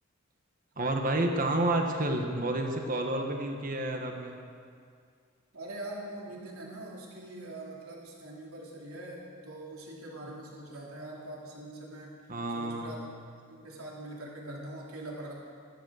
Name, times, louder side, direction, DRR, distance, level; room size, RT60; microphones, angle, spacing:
voice 1, 0.8-4.3 12.3-13.0, right 1 dB, 40° right, 3 dB, 1.6 m, -30 dB
voice 2, 5.5-12.2 12.5-13.1 13.5-15.3, right 1 dB, 90° right, -3 dB, 3.5 m, -43 dB
16.0 x 12.5 x 6.6 m, 2.2 s
head